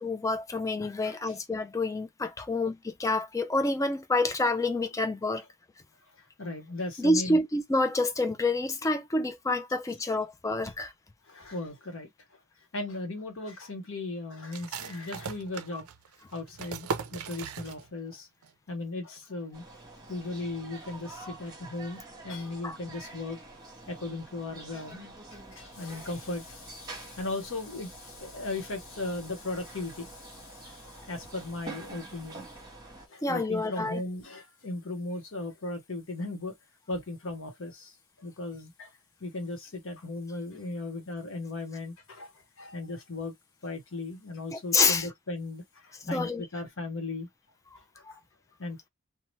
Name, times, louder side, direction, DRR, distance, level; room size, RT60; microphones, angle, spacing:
voice 1, 0.0-5.4 7.0-10.9 15.7-15.8 22.6-22.8 33.2-34.0 44.5-45.1 46.1-46.5, left 2 dB, 15° left, 0.3 m, -28 dB
voice 2, 1.0-1.3 6.4-7.4 11.3-12.1 12.7-15.9 16.3-18.3 18.7-19.6 20.1-23.4 23.9-25.1 25.5-30.1 31.1-32.5 33.1-36.5 36.9-37.9 38.2-38.9 39.2-42.3 42.6-43.3 43.6-45.6 46.1-47.3 48.6-48.9, left 2 dB, 60° left, 0.9 m, -37 dB
sound 1, 14.5-18.2 18.4-18.5 19.0-19.4, right 5 dB, 70° right, 0.4 m, -38 dB
sound 2, 19.5-33.1, right 2 dB, 20° right, 1.1 m, -47 dB
2.8 x 2.0 x 3.0 m
head